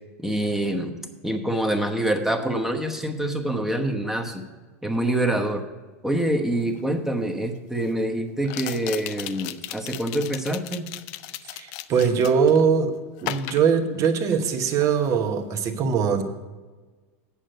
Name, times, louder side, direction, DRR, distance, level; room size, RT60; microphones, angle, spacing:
voice 1, 0.2-0.9 1.2-4.4 4.8-5.6 6.0-10.9, right 1 dB, 5° right, 4 dB, 1.1 m, -26 dB
sound 1, 6.7-6.8 8.4-12.6 13.2-14.5 14.8-15.1, left 14 dB, 55° left, 0.5 m, -36 dB
voice 2, 11.5-13.0 13.2-16.2, right 6 dB, 40° right, 7 dB, 1.1 m, -21 dB
8.6 x 6.5 x 6.5 m, 1.3 s
hypercardioid pair, 105°, 8 cm